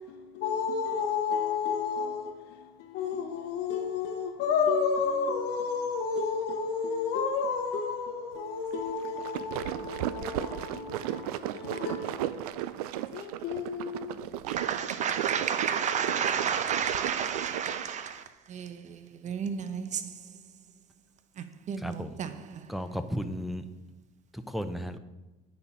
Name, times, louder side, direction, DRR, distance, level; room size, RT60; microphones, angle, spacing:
voice 1, 0.0-14.3, left 5 dB, 65° left, 0.9 m, -31 dB
sound 1, 9.0-17.9, right 13 dB, 90° right, 0.4 m, -35 dB
voice 2, 14.5-20.3 21.4-22.8, right 7 dB, 40° right, 0.8 m, -32 dB
voice 3, 21.8-22.2 22.7-23.6 24.5-25.0, equal, ahead, 0.6 m, -34 dB
9.5 x 4.3 x 5.4 m
supercardioid pair, 90°, 19 cm